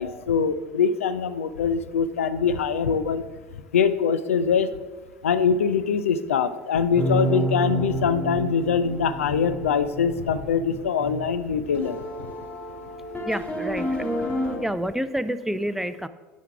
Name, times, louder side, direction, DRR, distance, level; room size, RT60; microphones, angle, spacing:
voice 1, 0.0-3.2 3.7-4.7 5.2-12.0, left 6 dB, 80° left, 12 dB, 0.5 m, -23 dB
sound 1, 6.9-14.6, right 1 dB, 15° left, 2.3 m, -30 dB
voice 2, 13.3-14.0 14.6-16.1, equal, 5° right, 13 dB, 0.4 m, -28 dB
9.4 x 5.7 x 4.6 m, 1.3 s
hypercardioid pair, 70°, 7 cm